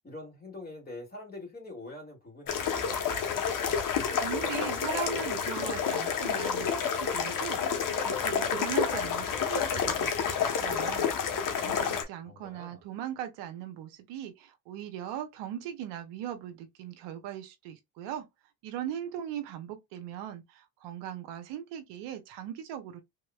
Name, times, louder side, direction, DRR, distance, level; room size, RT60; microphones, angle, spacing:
voice 1, 0.0-3.0 12.2-12.8, left 2 dB, 20° left, 2.3 m, -44 dB
sound 1, 2.5-12.0, left 7 dB, 45° left, 1.1 m, -29 dB
voice 2, 4.2-7.6 8.0-11.1 11.6-18.3 18.6-23.0, right 10 dB, 65° right, 0.8 m, -39 dB
3.4 x 2.9 x 2.3 m
hypercardioid pair, 75°, 45 cm